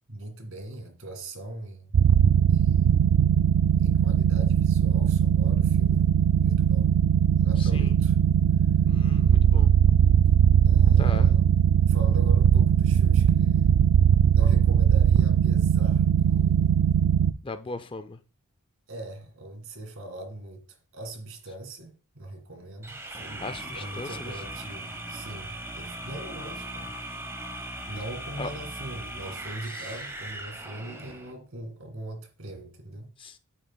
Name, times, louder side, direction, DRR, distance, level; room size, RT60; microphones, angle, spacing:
voice 1, 0.1-1.9 2.5-3.1 3.8-6.9 7.3-8.2 10.7-11.4 11.9-13.8 14.3-16.8 18.9-20.7 20.9-27.0 27.9-33.1, right 1 dB, 65° right, 2.1 m, -41 dB
sound 1, 1.9-17.3, right 8 dB, 90° right, 0.3 m, -20 dB
voice 2, 7.6-7.9 8.8-9.7 11.0-11.3 17.4-18.2 23.4-24.3 28.4-28.5 29.7-29.9 33.2-33.4, left 3 dB, 25° left, 0.4 m, -38 dB
sound 2, 22.8-31.3, right 1 dB, 10° right, 1.0 m, -39 dB
8.9 x 8.7 x 2.3 m
head